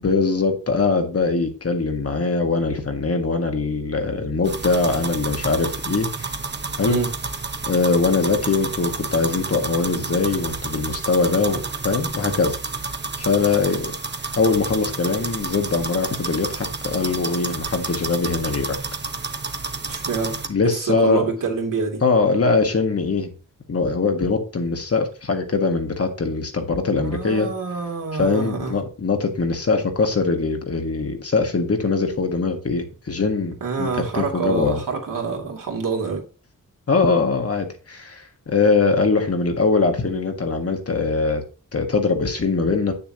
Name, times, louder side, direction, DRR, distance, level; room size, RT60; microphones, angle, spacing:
voice 1, 0.0-6.3 6.8-7.0 7.7-12.6 13.2-13.9 14.3-18.8 20.5-21.3 22.0-23.3 23.7-27.5 28.1-34.8 36.9-41.4 41.7-42.9, left 4 dB, 45° left, 1.6 m, -22 dB
sound 1, 4.4-20.5, right 4 dB, 35° right, 1.0 m, -30 dB
voice 2, 19.9-22.0 26.9-28.8 33.6-36.2, right 5 dB, 75° right, 2.8 m, -26 dB
8.3 x 6.9 x 2.9 m
wide cardioid pair, 110°, 33 cm